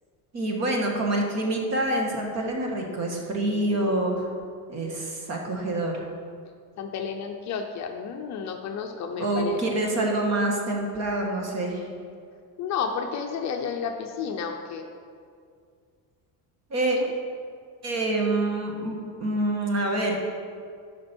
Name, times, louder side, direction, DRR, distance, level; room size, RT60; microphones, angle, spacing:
voice 1, 0.3-4.3 4.7-6.0 9.2-11.9 16.7-17.0 17.8-20.2, right 1 dB, 40° right, 0 dB, 1.5 m, -26 dB
voice 2, 6.8-9.6 12.6-14.9 17.0-17.1, left 6 dB, 40° left, 4 dB, 0.6 m, -31 dB
12.5 x 5.3 x 4.4 m, 2.2 s
cardioid pair, 160°, 42 cm